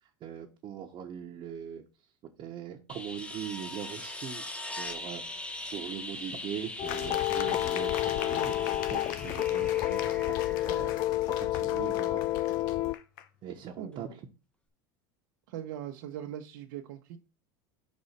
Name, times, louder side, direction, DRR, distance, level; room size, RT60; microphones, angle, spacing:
voice 1, 0.0-1.8 2.2-4.5 4.8-10.3 10.6-10.9 11.3-12.2 13.4-14.3, right 9 dB, 45° right, 1.1 m, -41 dB
sound 1, 2.9-11.6 13.9-14.0, left 1 dB, 10° left, 0.9 m, -41 dB
sound 2, 6.8-12.9, left 14 dB, 40° left, 0.4 m, -30 dB
sound 3, 6.9-13.3, left 11 dB, 75° left, 0.7 m, -42 dB
voice 2, 13.8-14.1 15.5-17.2, right 10 dB, 70° right, 0.8 m, -40 dB
5.3 x 4.2 x 5.2 m
supercardioid pair, 110°, 11 cm